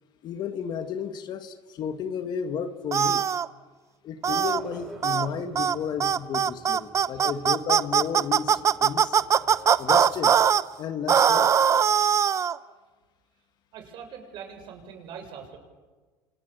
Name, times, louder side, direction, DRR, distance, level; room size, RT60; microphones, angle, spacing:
voice 1, 0.2-3.3 4.0-9.2 9.8-10.4 10.8-11.5, left 7 dB, 50° left, 10 dB, 1.9 m, -33 dB
sound 1, 2.9-3.5 4.2-4.6 5.0-5.3 5.6-5.8 6.0-10.6 11.1-12.6, right 8 dB, 35° right, 0.8 m, -21 dB
sound 2, 4.2-10.5, right 1 dB, 5° right, 6.5 m, -48 dB
voice 2, 13.7-15.6, right 7 dB, 60° right, 4 dB, 6.9 m, -42 dB
29.0 x 26.5 x 6.8 m, 1.3 s
cardioid pair, 120°, 9 cm